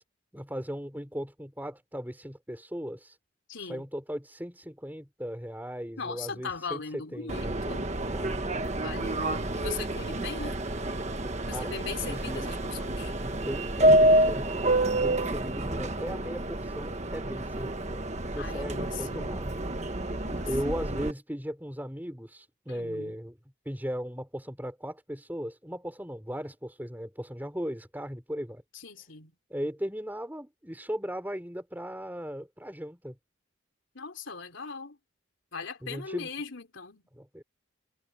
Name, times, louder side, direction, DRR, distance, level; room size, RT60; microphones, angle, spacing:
voice 1, 0.3-3.2 3.6-7.5 8.1-8.9 11.2-12.5 13.2-18.0 18.3-19.6 20.4-23.4 23.6-28.6 29.5-33.2 35.8-36.3 37.1-37.4, equal, 10° right, 4.8 m, -37 dB
voice 2, 3.5-3.9 6.0-7.9 8.8-10.7 11.5-13.2 18.4-19.3 20.1-20.5 22.7-23.2 28.7-29.3 33.9-35.0 35.5-37.0, left 5 dB, 65° left, 3.5 m, -39 dB
Subway metro underground, 7.3-21.1, right 1 dB, 35° right, 1.4 m, -28 dB
head